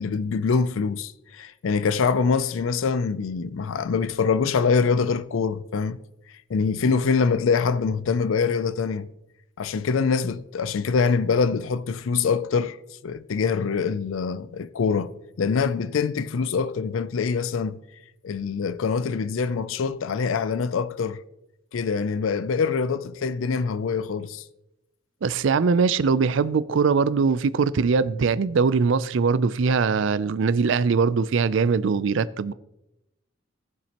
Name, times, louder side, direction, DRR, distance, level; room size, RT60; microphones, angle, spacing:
voice 1, 0.0-6.0 6.5-9.1 9.6-12.8 13.0-15.1 15.4-17.8 18.2-21.2 21.7-24.4, left 5 dB, 85° left, 0.4 m, -24 dB
voice 2, 25.2-32.5, right 5 dB, 70° right, 0.4 m, -21 dB
18.0 x 7.3 x 2.9 m
head